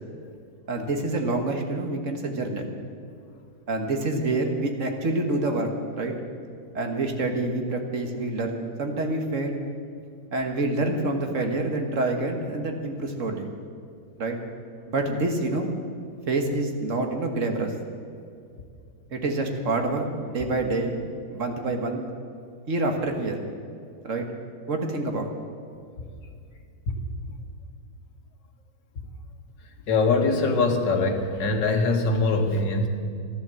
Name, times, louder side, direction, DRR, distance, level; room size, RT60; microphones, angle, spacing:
voice 1, 0.7-2.7 3.7-6.1 6.7-9.6 10.3-13.5 14.2-14.4 14.9-15.7 16.3-17.7 19.1-20.9 21.3-22.0 22.7-23.4 24.0-24.3 24.7-25.3, right 2 dB, 50° right, 4 dB, 1.7 m, -27 dB
voice 2, 29.9-32.9, left 3 dB, 85° left, 3 dB, 2.0 m, -23 dB
14.0 x 11.5 x 7.6 m, 2.3 s
omnidirectional pair, 1.8 m